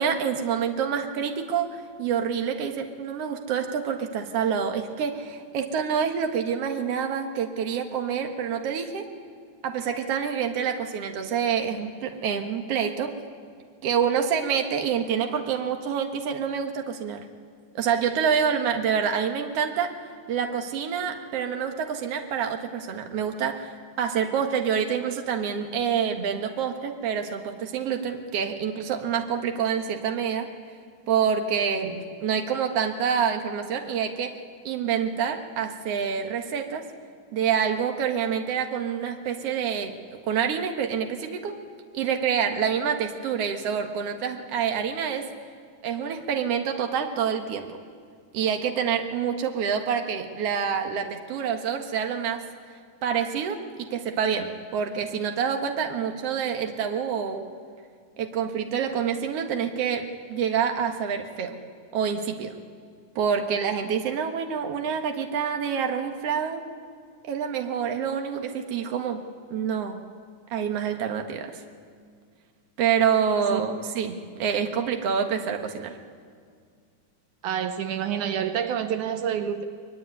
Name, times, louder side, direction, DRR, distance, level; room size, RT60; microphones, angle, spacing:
voice 1, 0.0-9.1 9.6-13.1 13.8-17.3 17.7-19.9 20.3-23.7 24.0-30.5 31.1-34.3 34.6-36.9 37.3-40.0 40.3-41.5 41.9-45.3 45.8-47.8 48.3-52.5 53.0-57.5 58.2-61.6 61.9-62.6 63.2-66.6 67.3-69.2 69.5-70.0 70.5-71.6 72.8-76.0, right 7 dB, 55° right, 5 dB, 2.3 m, -27 dB
voice 2, 77.4-79.6, right 9 dB, 80° right, 8 dB, 2.4 m, -28 dB
25.0 x 21.5 x 9.8 m, 2.1 s
omnidirectional pair, 3.5 m